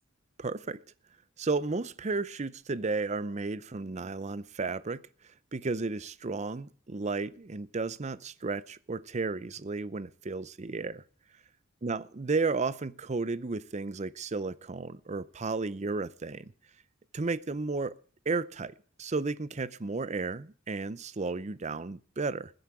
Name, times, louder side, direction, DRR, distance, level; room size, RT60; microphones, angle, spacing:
voice 1, 0.4-0.8 1.4-5.0 5.5-11.0 11.8-16.5 17.1-18.0 18.3-22.5, right 3 dB, 35° right, 0.6 m, -33 dB
21.0 x 8.0 x 4.8 m
head